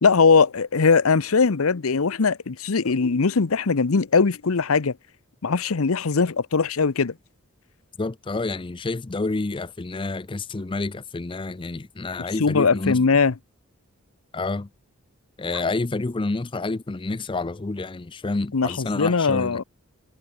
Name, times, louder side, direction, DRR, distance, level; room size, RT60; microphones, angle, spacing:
voice 1, 0.0-4.9 5.4-7.1 12.4-13.3 18.5-19.6, left 4 dB, 80° left, 0.8 m, -20 dB
voice 2, 8.0-13.0 14.3-14.7 15.4-19.6, left 3 dB, 25° left, 0.5 m, -29 dB
head